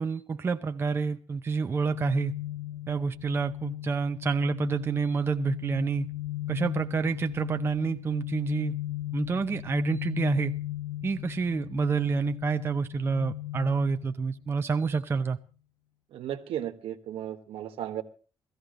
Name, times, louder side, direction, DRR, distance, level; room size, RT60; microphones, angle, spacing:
voice 1, 0.0-2.3 2.9-6.1 6.5-8.7 9.1-10.5 11.0-15.4, right 5 dB, 25° right, 7 dB, 0.6 m, -28 dB
sound 1, 1.8-14.9, left 15 dB, 25° left, 1.2 m, -37 dB
voice 2, 16.1-18.0, right 11 dB, 80° right, 7 dB, 1.4 m, -35 dB
16.5 x 14.0 x 3.8 m, 0.37 s
cardioid pair, 145°, 9 cm